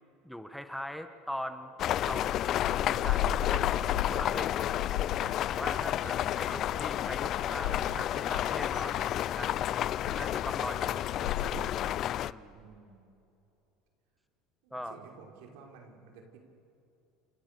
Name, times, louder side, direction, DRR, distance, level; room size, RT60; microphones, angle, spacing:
voice 1, 0.2-2.3 2.9-4.8 5.5-9.0 9.3-9.6 10.1-11.3 12.2-12.5 14.7-15.0, equal, ahead, 8 dB, 1.3 m, -41 dB
sound 1, 1.8-12.3, left 12 dB, 45° left, 0.6 m, -31 dB
sound 2, 2.2-11.9, left 11 dB, 80° left, 1.6 m, -36 dB
voice 2, 5.8-6.7 9.5-10.2 10.7-11.6 12.5-13.0 14.6-16.4, right 4 dB, 80° right, 1 dB, 5.4 m, -54 dB
29.5 x 29.0 x 6.9 m, 2.8 s
supercardioid pair, 125°, 0 cm